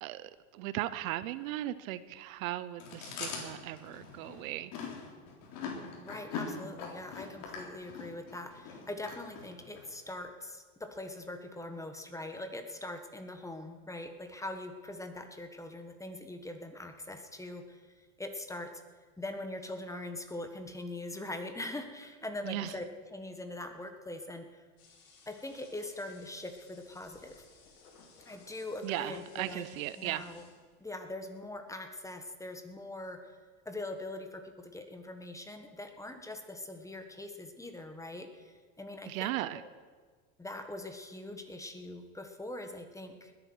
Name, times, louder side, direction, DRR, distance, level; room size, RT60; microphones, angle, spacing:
voice 1, 0.0-4.7 22.4-22.8 28.8-30.2 39.0-39.6, right 15 dB, 75° right, 15 dB, 0.8 m, -37 dB
Chewing mastication, 2.8-9.8, left 5 dB, 55° left, 3.8 m, -42 dB
voice 2, 6.0-18.7 19.2-24.6 25.3-27.3 28.3-29.6 30.0-30.4 30.8-33.4 33.6-39.7 40.4-43.3, left 2 dB, 5° left, 6 dB, 1.4 m, -42 dB
sound 1, 24.8-30.9, left 4 dB, 90° left, 3.7 m, -60 dB
20.5 x 8.9 x 6.3 m, 1.5 s
supercardioid pair, 120°, 41 cm